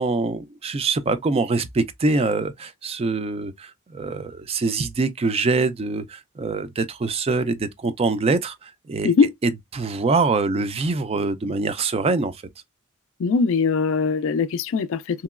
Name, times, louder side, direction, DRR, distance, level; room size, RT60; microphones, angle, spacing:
voice 1, 0.0-9.1 9.7-12.4, right 3 dB, 30° right, 0.3 m, -24 dB
voice 2, 13.2-15.2, left 4 dB, 65° left, 0.4 m, -21 dB
2.9 x 2.9 x 2.3 m
head